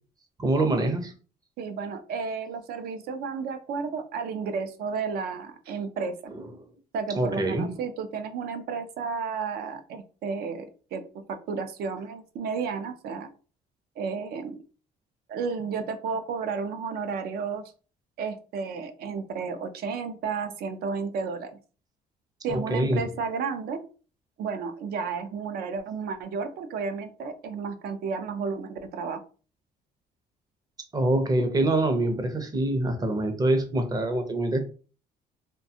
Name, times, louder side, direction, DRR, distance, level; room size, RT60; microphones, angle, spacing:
voice 1, 0.4-1.1 6.3-6.5 7.2-7.7 22.5-23.0 30.9-34.6, right 1 dB, 20° right, 0.6 m, -25 dB
voice 2, 1.6-6.2 6.9-13.3 14.0-14.6 15.3-17.7 18.2-21.5 22.4-23.8 24.4-29.2, right 5 dB, 65° right, 0.5 m, -32 dB
2.4 x 2.2 x 2.7 m
cardioid pair, 110°, 17 cm